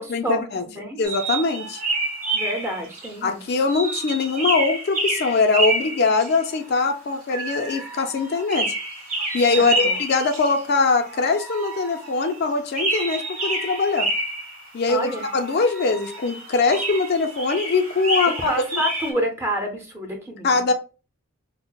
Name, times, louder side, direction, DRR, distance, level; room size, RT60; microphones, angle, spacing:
voice 1, 0.0-0.6 1.0-1.8 3.2-8.7 9.3-14.1 14.7-18.5 20.4-20.7, left 4 dB, 45° left, 6 dB, 0.3 m, -22 dB
sound 1, 1.0-3.1 3.7-6.8 7.3-12.4 12.7-14.7 15.1-19.1, right 2 dB, 40° right, 1.5 m, -28 dB
voice 2, 2.3-3.4 9.5-10.0 14.9-15.3 18.5-20.6, equal, 10° right, 2 dB, 0.6 m, -28 dB
5.6 x 2.0 x 2.2 m, 0.33 s
head